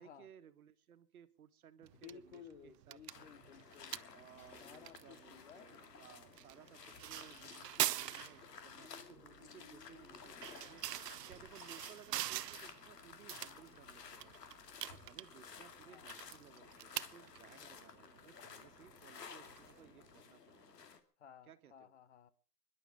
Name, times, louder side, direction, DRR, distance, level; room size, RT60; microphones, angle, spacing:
voice 1, 0.0-3.3 4.1-10.8 11.3-14.4 14.9-20.9 21.5-21.9, right 9 dB, 65° right, 1.5 m, -60 dB
voice 2, 1.8-4.2 4.6-5.7 15.9-16.1 21.2-22.3, left 8 dB, 45° left, 1.2 m, -57 dB
sound 1, 1.8-20.2, right 12 dB, 90° right, 0.7 m, -45 dB
sound 2, 3.1-21.0, left 6 dB, 90° left, 2.5 m, -55 dB
Coin (dropping), 3.3-17.1, left 2 dB, 15° left, 3.5 m, -71 dB
24.0 x 11.0 x 5.0 m
hypercardioid pair, 170°, 47 cm